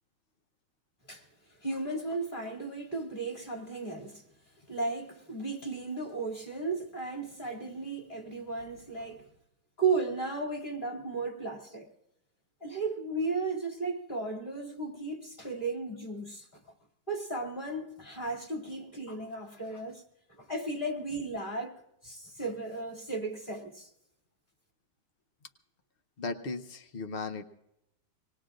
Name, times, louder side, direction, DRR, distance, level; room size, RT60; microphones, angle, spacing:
voice 1, 1.6-4.3 4.7-9.3 9.8-11.9 12.6-16.6 17.1-20.0 20.4-23.9, right 3 dB, 25° left, 2.7 m, -35 dB
voice 2, 26.2-27.4, left 3 dB, 65° left, 0.5 m, -36 dB
26.0 x 20.0 x 2.5 m
omnidirectional pair, 2.2 m